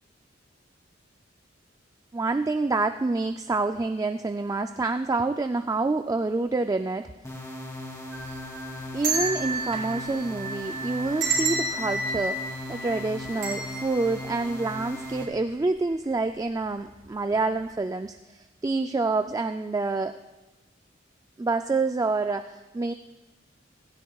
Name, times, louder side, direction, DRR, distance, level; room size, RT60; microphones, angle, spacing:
voice 1, 2.1-7.1 8.9-20.2 21.4-22.9, right 3 dB, 20° right, 8 dB, 0.3 m, -27 dB
sound 1, 7.2-15.2, left 1 dB, 15° left, 2.4 m, -38 dB
sound 2, 8.1-15.3 15.6-15.7 16.7-16.9 17.3-17.5, right 3 dB, 70° right, 2.7 m, -32 dB
16.5 x 16.0 x 2.3 m, 1.1 s
head